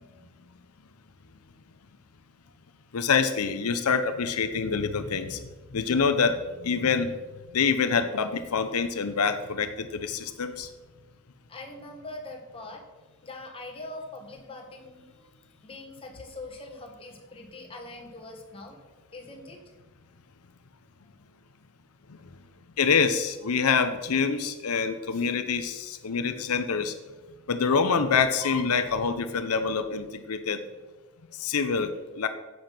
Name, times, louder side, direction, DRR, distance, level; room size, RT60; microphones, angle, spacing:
voice 1, 2.9-5.4 5.7-7.1 7.5-10.7 22.8-26.9 27.5-30.6 31.4-32.3, left 5 dB, 90° left, 9 dB, 0.7 m, -26 dB
voice 2, 11.5-12.8 13.2-15.2 15.5-18.8 19.1-19.6, left 2 dB, 25° left, 2 dB, 1.7 m, -42 dB
10.0 x 7.9 x 5.9 m, 1.3 s
head